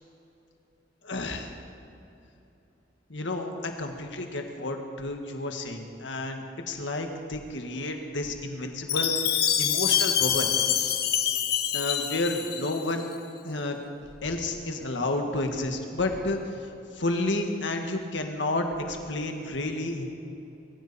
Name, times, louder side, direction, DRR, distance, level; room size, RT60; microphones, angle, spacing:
voice 1, 1.0-1.5 3.1-10.5 10.8-11.0 11.7-13.1 13.4-13.8 14.2-20.0, left 2 dB, 80° left, 4 dB, 1.8 m, -31 dB
Chime, 8.9-13.0, left 9 dB, 55° left, 1.0 m, -26 dB
22.0 x 15.5 x 4.3 m, 2.8 s
head